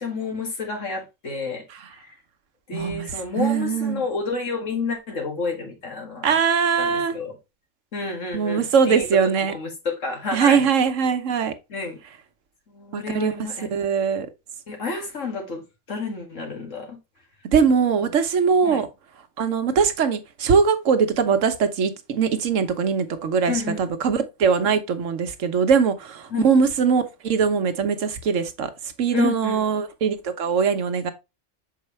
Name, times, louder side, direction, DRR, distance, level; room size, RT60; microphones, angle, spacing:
voice 1, 0.0-1.6 2.0-2.1 2.7-6.3 6.8-7.3 7.9-9.1 9.5-10.7 11.7-12.0 12.7-13.7 14.7-15.6 15.9-17.0 18.0-18.1 18.6-18.9 23.5-23.8 26.3-26.5 29.1-29.6, left 4 dB, 75° left, 2.2 m, -30 dB
voice 2, 2.7-3.1 3.4-4.1 6.2-7.2 8.3-9.5 10.3-11.5 12.9-14.3 17.5-18.9 19.4-28.7 29.0-31.1, right 6 dB, 80° right, 1.2 m, -21 dB
6.7 x 4.7 x 3.1 m
omnidirectional pair, 1.3 m